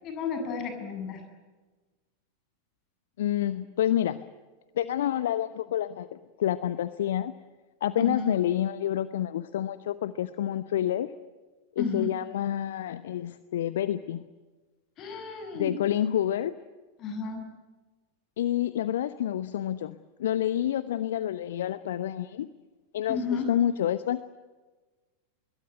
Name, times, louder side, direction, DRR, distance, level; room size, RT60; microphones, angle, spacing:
voice 1, 0.0-1.2 8.0-8.3 11.8-12.1 15.0-15.7 17.0-17.4 23.1-23.5, left 5 dB, 35° left, 6 dB, 7.7 m, -32 dB
voice 2, 3.2-4.2 4.8-7.3 7.8-11.1 11.8-14.3 15.5-16.5 18.4-22.5 22.9-24.2, left 11 dB, 60° left, 14 dB, 0.9 m, -28 dB
25.0 x 22.5 x 9.8 m, 1.3 s
figure-of-eight pair, 90°, 0 cm